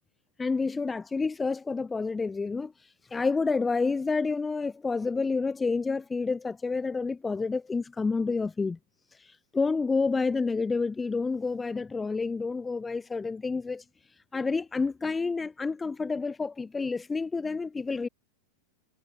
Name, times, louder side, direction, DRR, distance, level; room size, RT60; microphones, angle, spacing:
voice 1, 0.4-8.8 9.1-13.9 14.3-18.1, left 4 dB, 15° left, 3.6 m, -29 dB
figure-of-eight pair, 90°, 0 cm